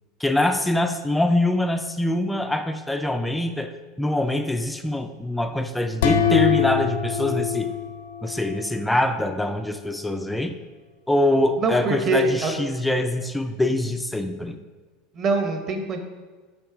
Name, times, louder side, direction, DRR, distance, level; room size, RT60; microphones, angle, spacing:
voice 1, 0.2-7.7 8.2-10.6 11.1-14.6, left 1 dB, 5° left, 7 dB, 0.3 m, -24 dB
sound 1, 6.0-8.8, left 8 dB, 85° left, 0.6 m, -23 dB
voice 2, 11.6-12.5 15.1-16.0, right 3 dB, 30° right, 5 dB, 0.9 m, -23 dB
6.4 x 6.0 x 4.8 m, 1.4 s
supercardioid pair, 165°, 0 cm